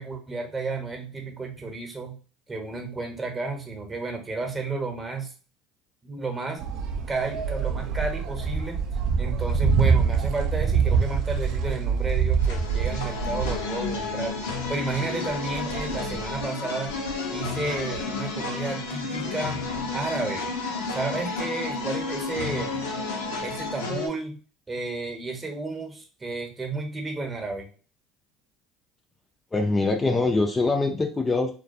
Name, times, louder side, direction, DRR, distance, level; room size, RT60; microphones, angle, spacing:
voice 1, 0.0-2.2 2.5-5.3 6.0-6.6 7.1-8.8 9.2-16.9 17.3-19.6 19.9-20.5 20.9-22.8 23.4-24.4 24.7-27.7, right 3 dB, 25° right, 2 dB, 0.9 m, -32 dB
sound 1, 6.6-16.4, right 5 dB, 65° right, 0.4 m, -26 dB
sound 2, 12.4-24.1, left 3 dB, 85° left, 0.6 m, -31 dB
voice 2, 29.5-31.5, left 3 dB, 20° left, 4 dB, 0.4 m, -23 dB
2.3 x 2.2 x 2.7 m, 0.37 s
hypercardioid pair, 75°, 0 cm